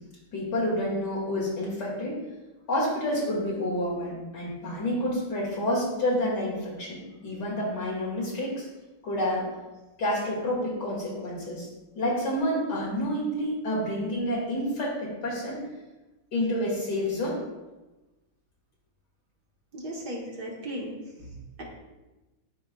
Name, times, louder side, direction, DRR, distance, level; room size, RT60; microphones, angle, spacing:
voice 1, 0.3-2.2 2.7-8.7 9.0-9.5 10.0-11.7 11.9-15.6 16.3-17.4, left 1 dB, 55° left, -5 dB, 2.7 m, -29 dB
voice 2, 19.7-20.9 21.2-21.6, right 1 dB, 55° right, -3 dB, 1.8 m, -37 dB
12.5 x 4.7 x 2.3 m, 1.1 s
omnidirectional pair, 2.3 m